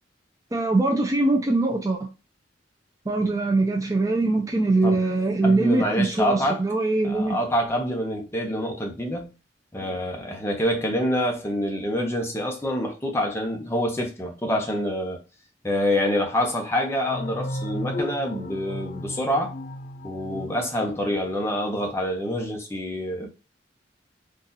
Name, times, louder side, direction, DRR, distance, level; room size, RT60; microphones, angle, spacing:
voice 1, 0.5-2.1 3.1-7.4, right 2 dB, 20° right, 0.5 m, -22 dB
voice 2, 5.4-6.6 7.0-9.3 9.7-15.2 15.6-19.5 20.0-23.3, equal, 15° left, 0.8 m, -26 dB
sound 1, 17.0-21.6, left 1 dB, 45° left, 0.4 m, -35 dB
3.9 x 2.4 x 2.7 m
head